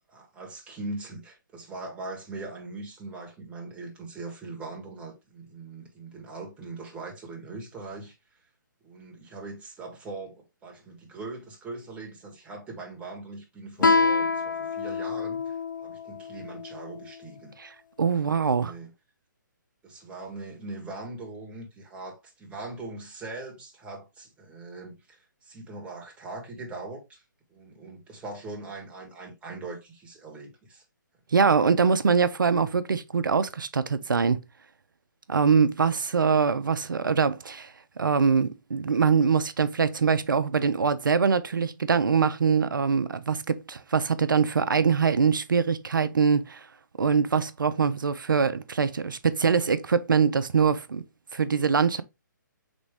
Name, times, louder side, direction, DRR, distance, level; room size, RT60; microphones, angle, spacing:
voice 1, 0.1-8.1 8.8-17.6 18.3-18.9 19.8-27.2 27.5-30.8, right 3 dB, 10° right, 1.2 m, -41 dB
Guitar, 13.8-17.1, left 4 dB, 70° left, 0.6 m, -26 dB
voice 2, 18.0-18.7 31.3-34.4 35.3-37.7 38.0-46.6 47.0-51.0 51.3-52.0, right 5 dB, 80° right, 0.6 m, -23 dB
4.0 x 3.5 x 3.4 m
hypercardioid pair, 140°, 11 cm